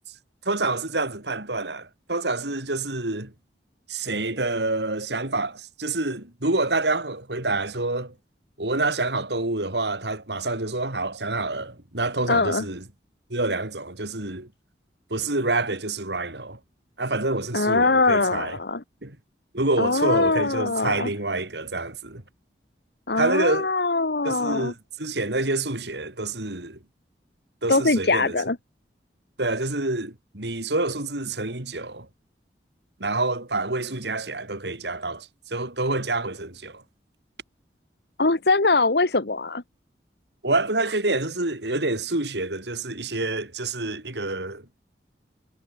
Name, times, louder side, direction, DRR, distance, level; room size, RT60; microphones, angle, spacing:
voice 1, 0.5-3.3 3.9-8.1 8.6-12.8 13.3-14.5 15.1-16.6 17.0-18.6 19.0-19.2 19.5-22.2 23.1-23.7 24.2-26.8 27.6-28.4 29.4-32.1 33.0-36.8 40.4-44.7, right 2 dB, 80° right, 3.7 m, -27 dB
voice 2, 12.3-12.6 17.5-18.8 19.8-21.1 23.1-24.7 27.7-28.6 38.2-39.6, left 3 dB, 70° left, 1.4 m, -22 dB
head